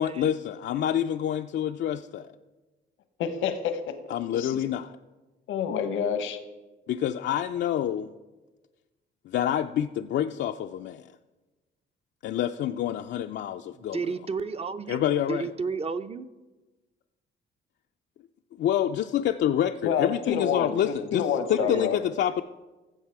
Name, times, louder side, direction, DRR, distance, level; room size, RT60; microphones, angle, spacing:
voice 1, 0.0-2.3 4.1-5.0 6.9-8.1 9.3-11.1 12.2-14.0 14.9-15.5 18.6-22.4, left 10 dB, 65° left, 6 dB, 0.4 m, -27 dB
voice 2, 3.2-3.9 4.3-4.6 5.5-6.4 19.8-22.0, left 7 dB, 85° left, 9 dB, 1.0 m, -28 dB
voice 3, 13.8-15.0 15.3-16.3 21.6-21.9, right 4 dB, 30° right, 11 dB, 0.6 m, -32 dB
14.5 x 7.3 x 4.7 m, 1.2 s
cardioid pair, 90°, 20 cm